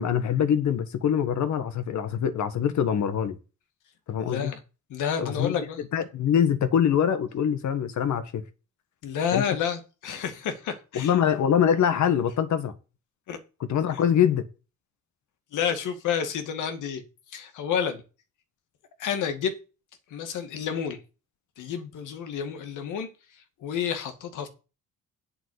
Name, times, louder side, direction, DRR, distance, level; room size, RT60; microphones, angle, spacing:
voice 1, 0.0-3.4 4.1-4.5 5.2-8.4 9.3-9.4 10.9-12.7 13.6-14.5, left 8 dB, 70° left, 1.7 m, -24 dB
voice 2, 4.3-4.6 4.9-5.8 9.0-11.1 13.3-13.4 15.5-17.0 17.3-18.0 19.0-19.5 20.1-21.0 21.6-23.1 23.6-24.5, left 7 dB, 85° left, 2.2 m, -29 dB
8.4 x 5.9 x 8.2 m
cardioid pair, 90°, 30 cm